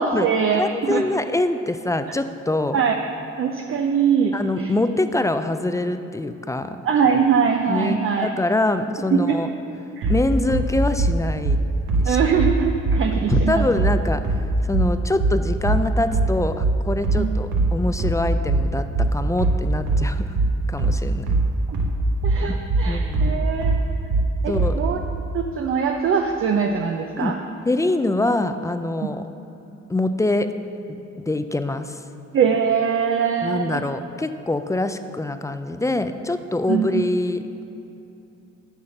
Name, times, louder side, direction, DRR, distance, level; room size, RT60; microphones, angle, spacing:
voice 1, 0.0-1.0 2.7-3.0 3.4-4.7 6.8-8.3 9.1-9.4 10.0-10.1 12.0-13.6 17.2-17.3 21.7-21.8 22.2-23.8 24.4-25.0 25.3-27.4 29.0-29.1 32.3-33.8 36.7-37.0, right 6 dB, 45° right, 4 dB, 0.6 m, -22 dB
voice 2, 0.5-2.8 4.3-6.8 7.7-9.5 10.1-11.6 12.0-12.2 13.3-14.2 14.6-20.3 20.7-21.3 22.4-22.5 22.9-23.5 24.5-24.7 27.2-27.3 27.7-29.2 29.9-30.5 31.2-32.0 33.4-37.4, left 2 dB, 10° left, 9 dB, 0.4 m, -24 dB
sound 1, 10.0-24.8, right 2 dB, 90° right, 1.2 m, -21 dB
8.0 x 5.7 x 6.5 m, 2.8 s
cardioid pair, 90°, 30 cm